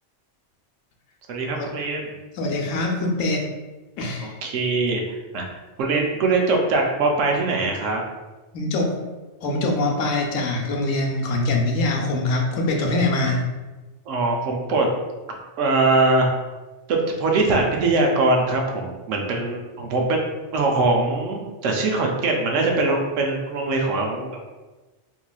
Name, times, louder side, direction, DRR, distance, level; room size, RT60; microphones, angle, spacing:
voice 1, 1.3-2.1 4.2-5.0 5.3-5.5 5.8-8.0 14.1-14.9 15.6-16.3 16.9-20.2 20.5-24.5, right 3 dB, 80° right, 1 dB, 0.9 m, -22 dB
voice 2, 2.3-3.5 4.0-4.3 8.5-9.0 9.4-13.4, left 2 dB, 90° left, 1 dB, 1.0 m, -23 dB
3.0 x 2.7 x 2.2 m, 1.2 s
omnidirectional pair, 1.3 m